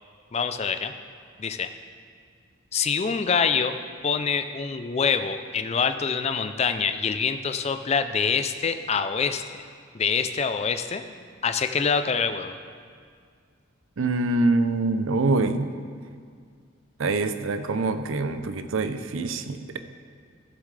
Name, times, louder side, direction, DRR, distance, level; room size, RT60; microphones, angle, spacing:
voice 1, 0.3-0.9 1.4-1.7 2.7-3.7 4.0-9.4 9.9-11.0 11.4-12.5, left 6 dB, 30° left, 9 dB, 0.4 m, -25 dB
voice 2, 14.0-15.7 17.0-19.8, right 3 dB, 75° right, 10 dB, 0.5 m, -25 dB
14.5 x 7.4 x 3.3 m, 2.1 s
head